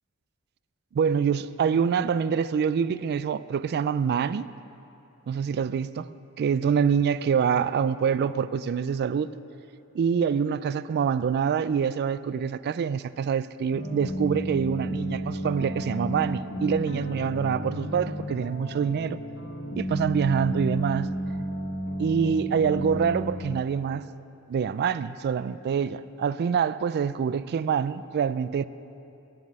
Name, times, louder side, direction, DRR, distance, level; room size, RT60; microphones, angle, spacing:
voice 1, 0.9-4.5 5.3-6.1 6.4-9.3 9.9-19.2 19.8-21.1 22.0-24.0 24.5-28.6, right 7 dB, 50° right, 0.3 m, -25 dB
sound 1, 13.7-23.6, equal, 60° left, 1.3 m, -32 dB
9.4 x 7.7 x 8.7 m
head